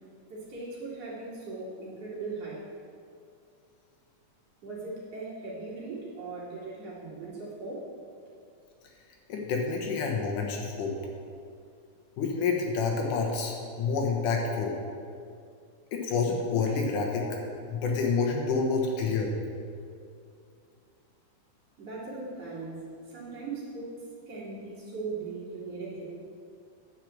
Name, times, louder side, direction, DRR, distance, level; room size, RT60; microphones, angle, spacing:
voice 1, 0.3-2.7 4.6-7.9 21.8-23.9 24.3-26.0, right 3 dB, 55° right, -7 dB, 3.0 m, -39 dB
voice 2, 9.3-10.9 12.2-14.8 15.9-17.4 17.7-19.3, left 4 dB, 80° left, 0 dB, 2.6 m, -28 dB
9.9 x 4.8 x 7.4 m, 2.3 s
omnidirectional pair, 3.5 m